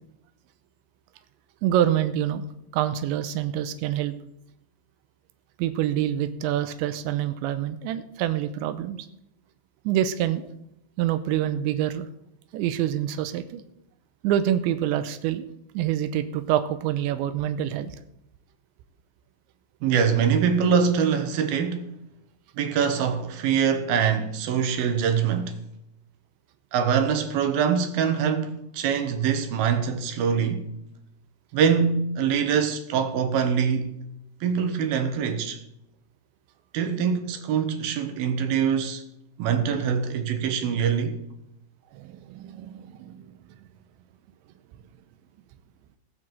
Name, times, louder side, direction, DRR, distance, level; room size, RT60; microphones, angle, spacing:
voice 1, 1.6-2.5 2.7-4.1 5.6-9.1 9.9-10.5 11.0-12.1 12.5-13.6 14.2-15.5 15.7-18.0 41.9-43.3, right 11 dB, 90° right, 3.0 m, -26 dB
voice 2, 19.8-21.9 22.6-25.6 26.7-30.7 31.5-33.9 34.4-35.6 36.7-39.0 39.4-41.2, right 7 dB, 65° right, 2.7 m, -24 dB
17.5 x 6.0 x 7.6 m
omnidirectional pair, 5.2 m